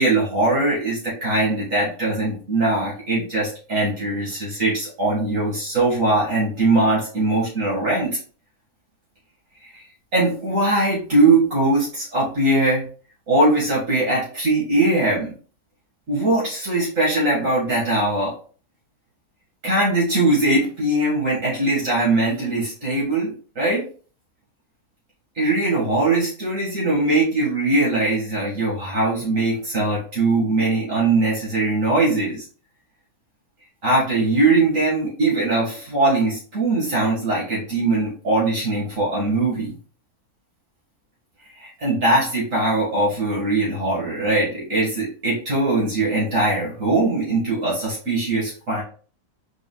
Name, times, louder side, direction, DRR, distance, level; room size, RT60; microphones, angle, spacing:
voice 1, 0.0-8.2 9.6-9.8 10.1-12.8 13.3-15.3 16.1-18.3 19.6-23.9 25.4-32.5 33.8-39.8 41.6-48.8, right 2 dB, 60° right, -7 dB, 2.1 m, -21 dB
4.9 x 3.7 x 2.3 m, 0.41 s
omnidirectional pair, 1.6 m